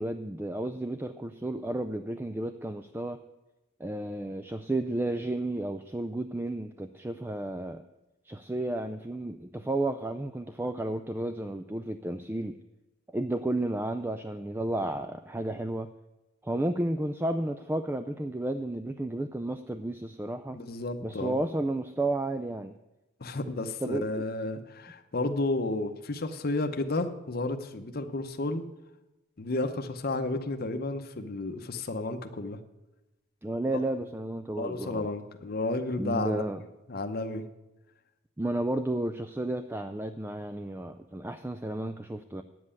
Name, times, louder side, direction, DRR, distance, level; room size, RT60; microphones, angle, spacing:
voice 1, 0.0-3.2 3.8-7.8 8.3-12.6 13.1-15.9 16.4-20.6 21.0-22.8 23.8-24.2 33.4-35.1 36.0-36.6 38.4-42.4, right 1 dB, 10° right, 9 dB, 0.3 m, -32 dB
voice 2, 20.5-21.4 23.2-28.6 29.4-32.6 34.6-36.5 36.9-37.4, left 2 dB, 50° left, 6 dB, 0.8 m, -32 dB
9.4 x 7.7 x 8.4 m, 1.0 s
head